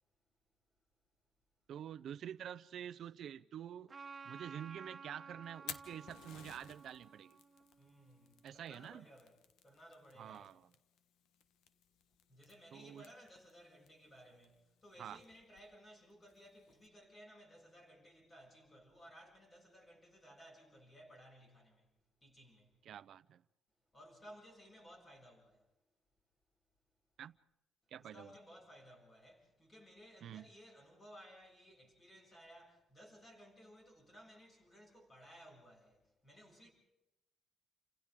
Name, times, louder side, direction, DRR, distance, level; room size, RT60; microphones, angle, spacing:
voice 1, 1.7-3.9 4.2-7.4 8.4-9.0 10.2-10.7 12.7-13.0 15.0-15.2 22.9-23.4 27.2-27.4 27.9-28.3 30.2-30.5, right 9 dB, 60° right, 0.7 m, -48 dB
Trumpet, 3.9-8.5, right 5 dB, 20° right, 2.1 m, -54 dB
Fire, 5.4-16.9, left 9 dB, 85° left, 1.3 m, -57 dB
voice 2, 7.8-10.5 12.3-21.9 22.2-22.8 23.9-25.7 28.0-36.7, equal, 20° left, 7.5 m, -59 dB
30.0 x 26.5 x 3.8 m
cardioid pair, 150°, 0 cm